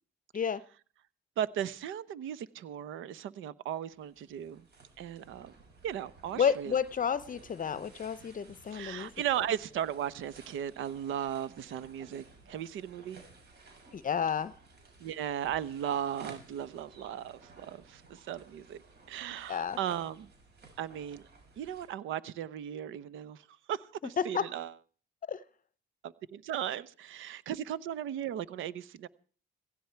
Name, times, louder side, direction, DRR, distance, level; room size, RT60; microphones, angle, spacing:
voice 1, 1.4-4.7 5.0-5.5 5.8-6.8 8.7-13.2 15.0-18.8 19.1-20.3 20.8-21.2 21.6-24.7 26.0-29.1, right 10 dB, 85° right, 1.0 m, -36 dB
sound 1, 3.9-21.9, right 3 dB, 55° right, 6.7 m, -56 dB
voice 2, 6.4-9.1 13.9-14.5 19.5-19.8 24.2-24.5 25.3-25.4, left 7 dB, 40° left, 0.8 m, -31 dB
16.5 x 16.5 x 4.6 m
cardioid pair, 90°, 20 cm